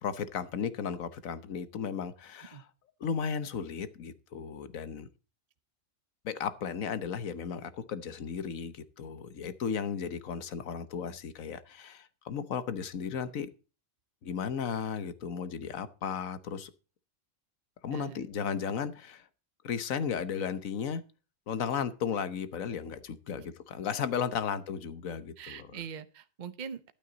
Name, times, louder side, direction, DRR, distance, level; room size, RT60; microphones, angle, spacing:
voice 1, 0.0-2.7 3.0-5.1 6.2-13.5 14.2-16.7 17.8-19.3 19.6-21.0 21.5-25.7, left 7 dB, 85° left, 13 dB, 1.4 m, -35 dB
voice 2, 17.9-18.2 23.4-23.5 25.4-26.9, right 7 dB, 40° right, 12 dB, 0.9 m, -42 dB
12.0 x 9.1 x 4.0 m, 0.33 s
omnidirectional pair, 1.4 m